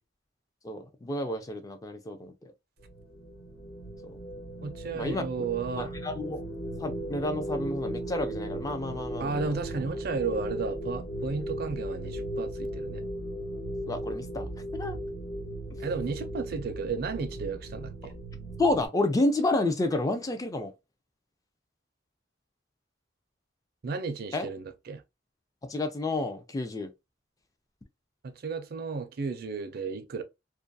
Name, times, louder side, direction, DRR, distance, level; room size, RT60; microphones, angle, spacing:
voice 1, 0.6-2.5 4.0-4.2 4.9-5.2 5.8-6.4 6.8-9.6 13.9-15.0 18.0-18.1 18.6-20.7 24.3-24.5 25.6-26.9, left 2 dB, 20° left, 0.3 m, -30 dB
sound 1, 2.8-18.9, right 1 dB, 65° left, 1.1 m, -37 dB
voice 2, 4.6-6.0 9.2-13.0 15.8-18.1 23.8-25.0 28.2-30.2, right 4 dB, 55° right, 0.4 m, -33 dB
2.3 x 2.2 x 2.5 m
head